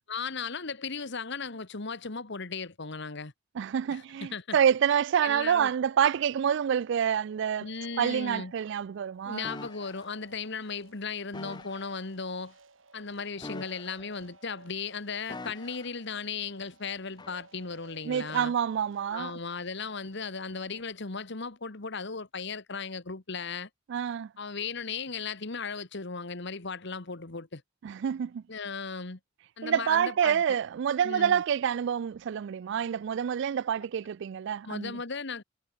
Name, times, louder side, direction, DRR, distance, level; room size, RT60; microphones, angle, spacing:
voice 1, 0.1-3.3 3.9-4.6 5.2-5.7 7.6-8.5 9.2-12.5 12.9-18.5 19.1-23.7 24.4-27.6 28.5-29.2 29.6-30.4 31.0-31.4 34.6-35.4, left 5 dB, 65° left, 1.7 m, -36 dB
voice 2, 3.6-7.7 8.0-9.5 18.0-19.3 23.9-24.3 27.8-28.4 29.6-35.0, right 8 dB, 65° right, 0.3 m, -27 dB
sound 1, 4.6-20.8, right 3 dB, 85° right, 3.6 m, -57 dB
sound 2, 9.4-10.1 11.3-12.0 13.4-14.3 15.3-16.0 17.2-17.4, left 3 dB, 20° left, 0.7 m, -44 dB
head